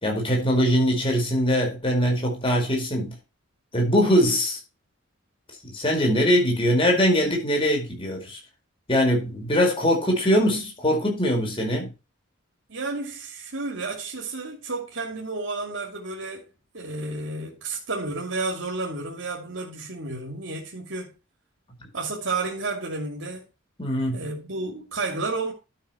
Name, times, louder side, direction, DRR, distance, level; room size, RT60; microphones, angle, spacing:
voice 1, 0.0-3.1 3.7-4.6 5.6-8.4 8.9-11.9 23.8-24.2, equal, 25° left, 4.8 m, -22 dB
voice 2, 12.7-16.4 16.7-21.1 21.9-23.4 24.1-25.5, right 3 dB, 65° right, 2.5 m, -31 dB
12.0 x 6.5 x 4.4 m
head